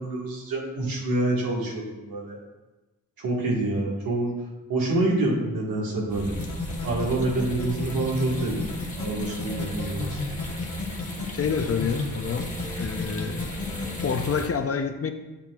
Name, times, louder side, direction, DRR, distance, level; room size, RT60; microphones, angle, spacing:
voice 1, 0.0-2.4 3.2-4.3 4.7-6.4 6.8-8.6 9.0-10.3, right 2 dB, 85° right, -3 dB, 1.7 m, -27 dB
sound 1, 6.1-14.5, left 1 dB, 20° left, 1.3 m, -37 dB
sound 2, 6.4-14.2, left 3 dB, 60° left, 1.3 m, -32 dB
voice 2, 11.3-12.5 12.8-13.4 14.0-15.1, left 6 dB, 45° left, 7 dB, 0.6 m, -27 dB
7.3 x 6.9 x 2.4 m, 1.1 s
cardioid pair, 65°, 34 cm